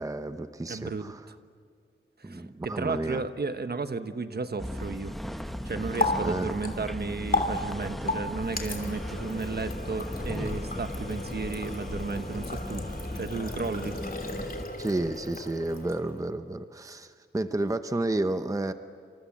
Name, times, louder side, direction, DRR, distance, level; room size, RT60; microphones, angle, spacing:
voice 1, 0.0-1.2 2.2-3.2 6.2-6.5 14.8-18.7, right 2 dB, 15° right, 10 dB, 0.9 m, -31 dB
voice 2, 0.7-1.4 2.2-5.2 5.6-14.0, right 4 dB, 50° right, 10 dB, 1.3 m, -34 dB
sound 1, 4.6-14.7, equal, ahead, 1.2 m, -37 dB
Water tap faucet, 5.4-16.2, left 2 dB, 45° left, 3.2 m, -35 dB
28.5 x 27.5 x 7.4 m, 2.3 s
wide cardioid pair, 120°, 21 cm